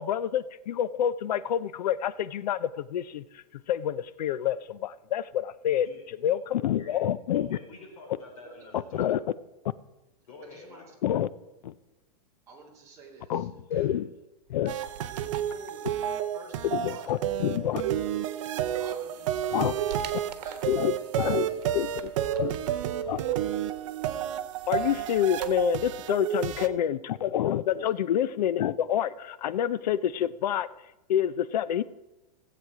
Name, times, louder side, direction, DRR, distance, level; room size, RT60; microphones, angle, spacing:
voice 1, 0.0-5.9 6.2-7.6 8.9-9.2 11.0-11.3 11.6-11.7 13.3-14.1 14.5-14.8 16.7-17.8 19.5-19.7 20.7-22.6 23.0-23.2 24.7-30.7 31.1-31.8, left 10 dB, 85° left, 0.6 m, -28 dB
voice 2, 5.8-7.0 7.3-9.1 10.3-10.9, left 3 dB, 60° left, 4.6 m, -48 dB
voice 3, 10.4-10.9 12.5-13.9 15.1-17.1 18.7-20.1 20.4-20.7 21.0-21.3 21.6-21.8 22.3-22.4 26.6-26.8, right 3 dB, 15° right, 2.4 m, -49 dB
sound 1, 14.5-15.5 18.6-18.7 19.1-20.8 21.4-22.9 23.3-25.9 26.2-26.3, right 9 dB, 80° right, 1.3 m, -48 dB
sound 2, 14.7-26.7, right 10 dB, 50° right, 0.7 m, -31 dB
16.0 x 7.8 x 4.9 m
supercardioid pair, 170°, 20 cm